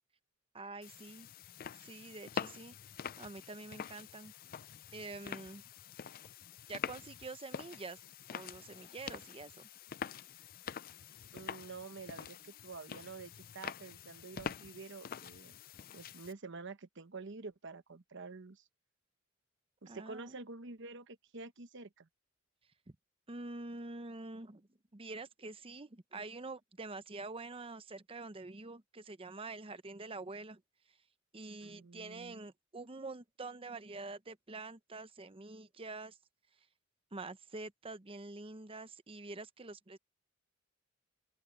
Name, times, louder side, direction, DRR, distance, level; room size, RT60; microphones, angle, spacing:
voice 1, 0.5-1.3 1.8-2.7 3.2-4.3 4.9-5.6 6.7-8.0 8.3-9.7 19.9-20.4 23.3-24.7 24.9-30.6 31.3-36.2 37.1-40.0, right 3 dB, 30° right, 0.8 m, -46 dB
sound 1, 0.8-16.3, left 7 dB, 45° left, 0.4 m, -46 dB
voice 2, 11.3-15.5 15.9-18.6 19.8-22.1 31.6-32.4, right 4 dB, 65° right, 1.1 m, -48 dB
open air
head